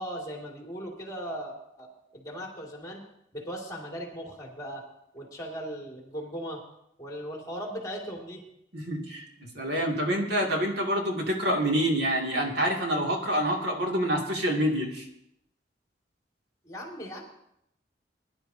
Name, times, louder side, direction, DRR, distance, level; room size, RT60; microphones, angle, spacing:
voice 1, 0.0-1.9 2.1-3.0 3.3-4.8 5.1-6.6 7.0-8.4 16.6-17.2, equal, 20° left, 0 dB, 2.4 m, -38 dB
voice 2, 8.7-9.3 9.5-15.0, equal, 65° right, -1 dB, 2.4 m, -27 dB
21.0 x 11.0 x 2.8 m, 0.79 s
head